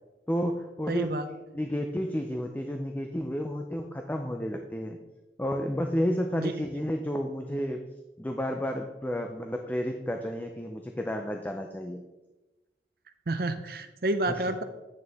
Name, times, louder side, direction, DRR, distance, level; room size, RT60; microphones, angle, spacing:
voice 1, 0.3-1.1 1.5-5.0 5.4-7.8 8.2-12.0, equal, 10° left, 4 dB, 0.4 m, -31 dB
voice 2, 0.9-1.3 6.3-6.6 13.3-14.6, right 2 dB, 55° right, 10 dB, 0.6 m, -29 dB
8.9 x 6.6 x 3.5 m, 1.1 s
head